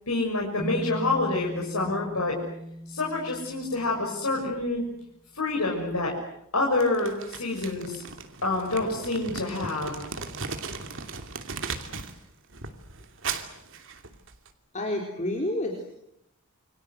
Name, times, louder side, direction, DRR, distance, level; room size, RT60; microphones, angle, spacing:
voice 1, 0.1-2.4 2.9-4.9 5.3-6.1 6.5-8.0 8.4-9.9, left 2 dB, 80° left, -2 dB, 6.4 m, -27 dB
sound 1, 0.6-4.9, equal, 5° left, 1.8 m, -39 dB
Crumpling crinkling, 6.8-12.2 12.5-14.5, right 5 dB, 60° right, 2.8 m, -37 dB
voice 2, 14.7-15.9, left 1 dB, 35° left, 1 dB, 4.0 m, -29 dB
28.5 x 25.5 x 8.1 m, 0.78 s
head